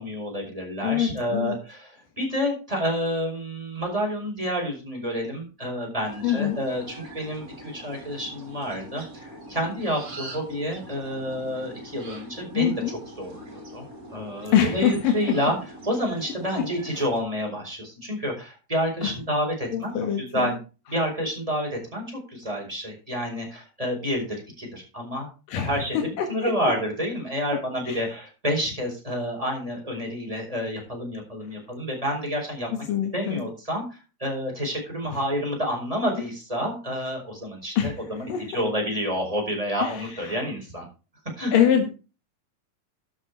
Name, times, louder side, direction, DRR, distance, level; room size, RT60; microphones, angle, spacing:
voice 1, 0.0-1.9 2.2-12.7 13.2-13.8 14.1-15.5 15.9-20.6 20.9-24.3 24.6-25.3 25.5-32.7 33.1-33.8 34.2-40.8 41.4-41.5, equal, 10° right, 0 dB, 4.5 m, -29 dB
voice 2, 0.8-1.6 6.2-6.6 12.5-13.0 14.5-15.3 19.0-19.1 19.7-20.6 25.5-26.5 27.5-27.6 27.9-28.0 32.7-33.5 35.1-35.2 37.8-37.9 38.3-38.4 39.8-40.4 41.5-41.9, left 9 dB, 90° left, 4 dB, 3.3 m, -24 dB
sound 1, 6.0-17.2, right 1 dB, 30° right, 2.5 m, -43 dB
12.5 x 6.9 x 4.7 m, 0.32 s
omnidirectional pair, 3.8 m